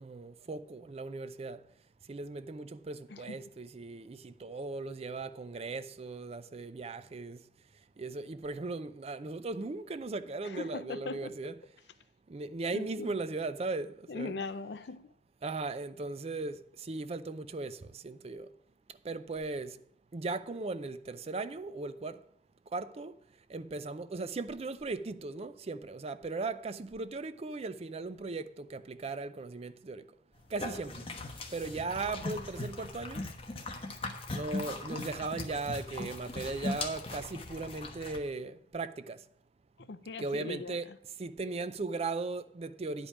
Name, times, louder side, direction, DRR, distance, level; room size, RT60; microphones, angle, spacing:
voice 1, 0.0-1.6 2.0-7.4 8.0-11.6 12.3-14.3 15.4-18.5 18.9-19.8 20.1-22.2 22.7-23.2 23.5-30.1 30.5-33.2 34.3-39.3 39.8-39.9 40.2-43.1, right 3 dB, 35° right, 0.4 m, -38 dB
voice 2, 10.5-11.3 12.7-13.1 14.1-15.1 39.9-41.0, left 3 dB, 65° left, 0.5 m, -40 dB
sound 1, 30.4-38.2, left 2 dB, 35° left, 1.2 m, -39 dB
10.0 x 5.2 x 7.1 m
head